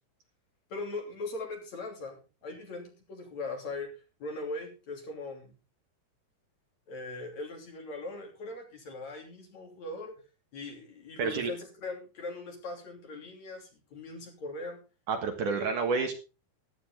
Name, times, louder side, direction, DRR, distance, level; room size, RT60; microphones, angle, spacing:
voice 1, 0.7-3.9 4.2-5.5 6.9-10.1 10.5-14.8, left 2 dB, 45° left, 2 dB, 4.1 m, -40 dB
voice 2, 11.2-11.5 15.1-16.1, right 5 dB, 60° right, 5 dB, 2.8 m, -29 dB
15.0 x 11.0 x 3.8 m, 0.30 s
omnidirectional pair, 4.5 m